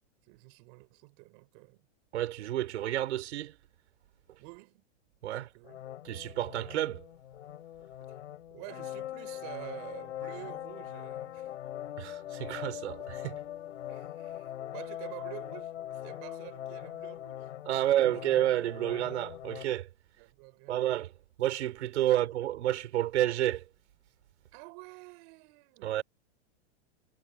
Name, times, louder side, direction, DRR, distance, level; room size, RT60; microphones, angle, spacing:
voice 1, 0.2-1.9 4.4-4.9 5.3-5.8 8.5-11.5 13.9-18.3 20.2-21.0 22.1-22.3 24.5-26.0, right 33 dB, 45° right, 7.0 m, -49 dB
voice 2, 2.1-3.6 5.2-5.5 6.0-7.0 12.0-13.4 17.7-19.9 20.7-21.1 21.4-23.6 25.8-26.0, right 13 dB, 75° right, 6.0 m, -30 dB
sound 1, 5.6-19.6, left 12 dB, 85° left, 4.9 m, -42 dB
supercardioid pair, 155°, 34 cm